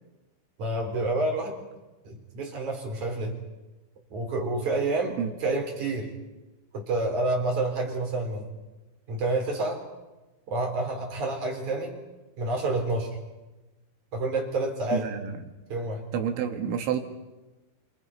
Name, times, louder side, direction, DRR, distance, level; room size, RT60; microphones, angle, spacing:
voice 1, 0.6-1.6 2.1-3.4 4.1-6.1 6.7-8.5 9.1-9.8 10.5-12.0 12.4-13.2 14.1-15.1 15.7-16.0, right 2 dB, 40° right, 1 dB, 5.3 m, -28 dB
voice 2, 14.9-15.3 16.1-17.0, right 8 dB, 75° right, 4 dB, 4.2 m, -28 dB
29.5 x 26.5 x 5.6 m, 1.1 s
omnidirectional pair, 5.5 m